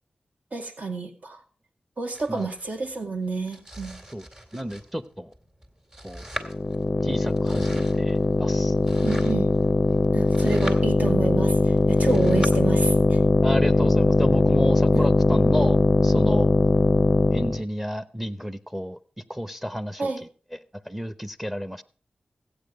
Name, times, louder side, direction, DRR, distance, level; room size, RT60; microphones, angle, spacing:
voice 1, 0.5-1.4 2.0-4.0 9.0-9.5 10.1-13.2 14.9-15.0 20.0-20.2, right 3 dB, 60° right, 4 dB, 2.0 m, -29 dB
Domestic sounds home sounds, 2.1-12.5, equal, 25° right, 2.2 m, -42 dB
voice 2, 4.5-5.3 6.0-6.3 7.0-8.7 12.1-12.2 13.4-16.5 17.3-19.0 19.3-20.6 20.9-21.8, equal, 5° right, 13 dB, 0.8 m, -31 dB
sound 1, 6.4-17.6, left 3 dB, 35° left, 0.5 m, -20 dB
15.0 x 8.7 x 5.2 m, 0.40 s
wide cardioid pair, 70°, 3 cm